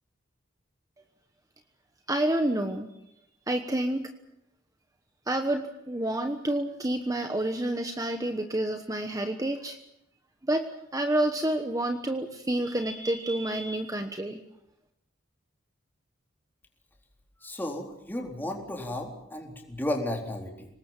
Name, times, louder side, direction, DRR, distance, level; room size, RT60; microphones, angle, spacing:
voice 1, 2.1-2.9 3.5-4.1 5.3-9.8 10.4-14.4, right 1 dB, 15° right, 6 dB, 1.1 m, -29 dB
voice 2, 17.4-20.7, left 1 dB, 10° left, 0 dB, 4.0 m, -33 dB
25.0 x 20.0 x 7.3 m, 0.80 s
head